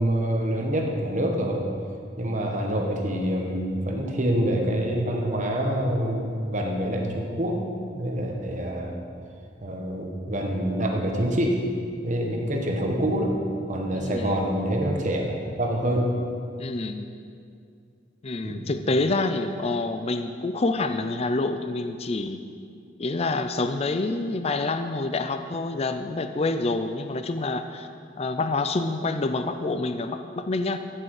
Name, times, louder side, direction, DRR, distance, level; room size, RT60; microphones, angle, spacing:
voice 1, 0.0-1.6 2.2-7.6 7.9-8.9 9.6-11.6 12.0-13.3 13.7-16.1 18.4-18.7, right 1 dB, 40° right, 1 dB, 1.4 m, -26 dB
voice 2, 13.9-14.5 16.6-17.1 18.2-22.4 23.0-27.9 28.2-30.8, left 3 dB, 35° left, 9 dB, 0.4 m, -27 dB
15.0 x 8.8 x 4.9 m, 2.4 s
head